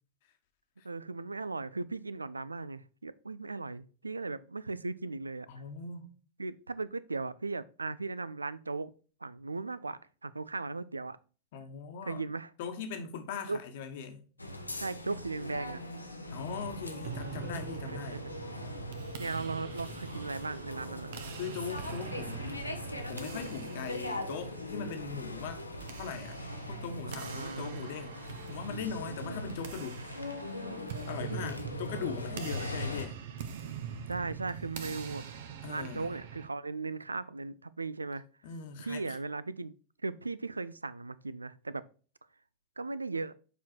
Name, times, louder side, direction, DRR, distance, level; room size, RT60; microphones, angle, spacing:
voice 1, 0.8-5.5 6.4-8.9 9.2-11.2 12.0-12.5 13.5-13.6 14.8-15.8 17.9-18.3 19.2-21.1 27.0-27.9 34.1-35.3 35.7-38.2 38.8-39.7 40.0-41.8 42.8-43.3, right 3 dB, 80° right, 0.4 m, -37 dB
voice 2, 5.5-6.1 11.5-12.2 12.6-14.3 16.3-18.2 21.4-22.7 23.1-25.6 26.0-30.0 31.0-33.2 35.6-36.1 38.4-39.2, left 6 dB, 50° left, 1.2 m, -40 dB
sound 1, 14.4-33.1, left 2 dB, 85° left, 0.8 m, -41 dB
sound 2, 17.0-36.5, right 7 dB, 55° right, 0.9 m, -44 dB
7.2 x 4.4 x 4.4 m
figure-of-eight pair, 90°, 0 cm